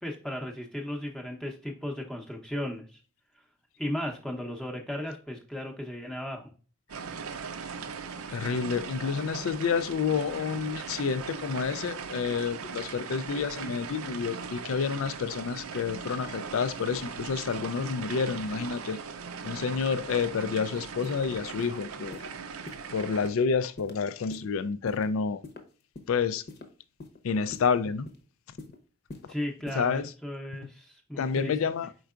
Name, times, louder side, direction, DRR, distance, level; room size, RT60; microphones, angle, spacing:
voice 1, 0.0-2.8 3.8-6.5 29.3-31.6, left 1 dB, 5° left, 0.7 m, -35 dB
sound 1, 6.9-23.3, right 5 dB, 85° right, 0.6 m, -39 dB
voice 2, 8.3-19.0 19.4-22.2 22.9-25.4 26.1-26.4 27.2-28.1 29.7-30.1 31.2-31.9, left 5 dB, 70° left, 0.4 m, -29 dB
sound 2, 21.0-21.2 21.6-21.8 22.1-22.3 22.7-22.8 23.2-23.4 23.8-23.9 24.3-24.5 24.9-25.1 25.4-26.1 26.5-26.6 27.0-27.2 27.5-27.7 28.0-28.2 28.6-28.8 29.1-29.3 29.7-29.8, left 3 dB, 50° left, 0.8 m, -43 dB
4.6 x 4.5 x 2.4 m
head